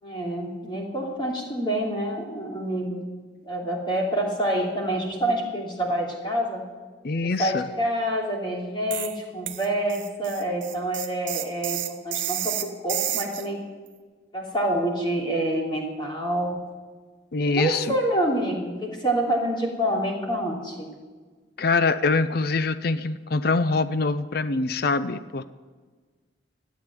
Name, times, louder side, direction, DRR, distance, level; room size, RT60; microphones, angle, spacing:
voice 1, 0.0-3.0 3.5-6.6 7.2-13.6 14.3-16.6 17.4-20.9, right 1 dB, 25° left, -2 dB, 2.9 m, -27 dB
voice 2, 7.0-7.7 17.3-17.9 21.6-25.4, left 3 dB, 50° left, 13 dB, 0.5 m, -24 dB
sound 1, 8.9-9.2 9.5-13.5, right 13 dB, 80° right, 1.0 m, -30 dB
13.0 x 8.5 x 9.7 m, 1.4 s
head